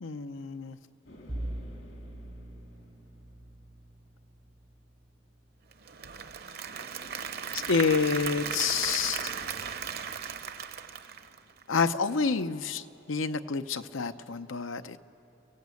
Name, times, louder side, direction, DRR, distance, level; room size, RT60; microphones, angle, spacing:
voice 1, 0.0-0.8 7.7-9.3 11.7-15.0, left 5 dB, 90° left, 10 dB, 0.7 m, -28 dB
sound 1, 1.1-3.9 6.6-12.0, left 1 dB, 70° left, 2.0 m, -52 dB
Bowed string instrument, 1.3-6.4, right 1 dB, 20° right, 0.5 m, -43 dB
Applause / Crowd, 5.7-11.8, right 7 dB, 55° right, 0.8 m, -37 dB
29.0 x 16.5 x 8.4 m, 2.8 s
head